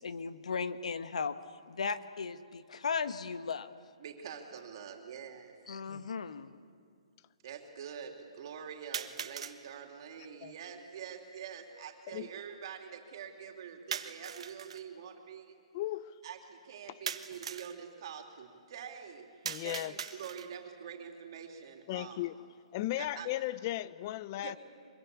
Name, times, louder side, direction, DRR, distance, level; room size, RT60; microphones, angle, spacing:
voice 1, 0.0-1.4 1.7-3.7 5.7-6.5, left 5 dB, 75° left, 1.3 m, -36 dB
voice 2, 4.0-5.5 7.4-15.6 16.2-22.3 22.9-23.3 24.4-24.6, right 7 dB, 45° right, 3.2 m, -46 dB
sound 1, 4.6-4.7 5.6-5.7 8.9-9.6 13.9-14.8 17.1-17.8 19.4-20.6, right 7 dB, 60° right, 1.4 m, -40 dB
voice 3, 15.7-16.1 19.4-19.9 21.9-22.3 22.7-24.6, left 15 dB, 30° left, 0.6 m, -36 dB
24.5 x 22.5 x 8.5 m
hypercardioid pair, 165°, 4 cm